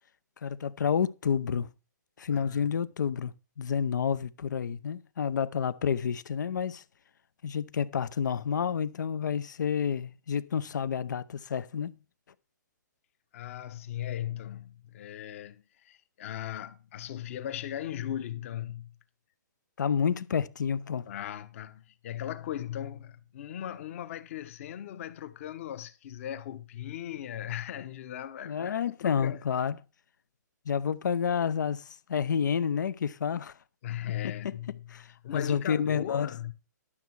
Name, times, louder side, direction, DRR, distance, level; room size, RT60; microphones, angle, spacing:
voice 1, 0.4-1.7 2.2-6.8 7.4-12.0 19.8-21.1 28.5-29.8 30.7-33.5 34.4-34.5 34.9-36.3, left 7 dB, 70° left, 0.7 m, -29 dB
voice 2, 2.3-2.7 13.3-18.9 21.1-29.4 33.8-34.9 35.2-36.5, left 11 dB, 45° left, 1.1 m, -38 dB
12.0 x 7.1 x 4.6 m
hypercardioid pair, 145°, 10 cm